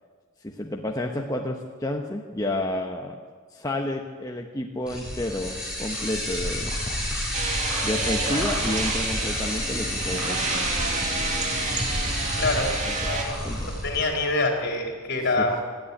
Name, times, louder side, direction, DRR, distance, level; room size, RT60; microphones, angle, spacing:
voice 1, 0.4-3.1 3.5-6.8 7.8-10.6 12.9-13.0 13.4-13.7 15.4-15.5, left 1 dB, 15° left, 1 dB, 1.1 m, -30 dB
sound 1, 4.9-14.0, equal, 5° right, 7.2 m, -30 dB
sound 2, 7.3-13.2, right 3 dB, 35° right, 2.4 m, -29 dB
voice 2, 12.4-12.7 13.0-13.4 13.7-15.6, left 2 dB, 55° left, 2 dB, 3.9 m, -25 dB
19.5 x 13.5 x 10.0 m, 1.5 s
head